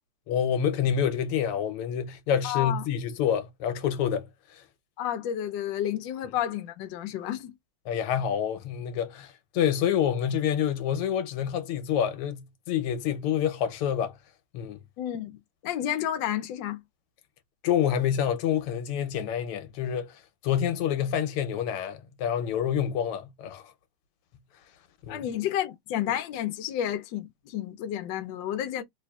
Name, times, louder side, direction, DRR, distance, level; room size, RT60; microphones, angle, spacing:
voice 1, 0.3-4.3 7.9-14.1 14.5-14.8 17.6-23.6 25.0-25.3, left 9 dB, 90° left, 1.7 m, -27 dB
voice 2, 2.4-2.8 5.0-7.5 15.0-15.4 15.6-16.8 25.1-28.8, left 11 dB, 70° left, 1.2 m, -31 dB
3.4 x 3.3 x 2.3 m
omnidirectional pair, 2.4 m